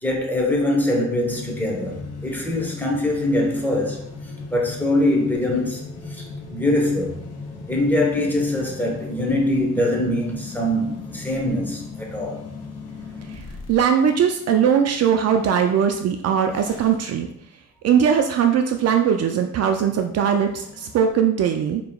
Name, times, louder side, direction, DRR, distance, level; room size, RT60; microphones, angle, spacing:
voice 1, 0.0-4.0 4.5-5.8 6.5-7.1 7.7-12.5, left 1 dB, 5° left, 1.0 m, -23 dB
sound 1, 1.2-17.3 18.7-21.1, left 3 dB, 55° left, 1.0 m, -38 dB
voice 2, 13.7-17.3 17.8-21.8, right 8 dB, 55° right, 0.4 m, -20 dB
4.8 x 2.9 x 2.3 m
cardioid pair, 90°, 30 cm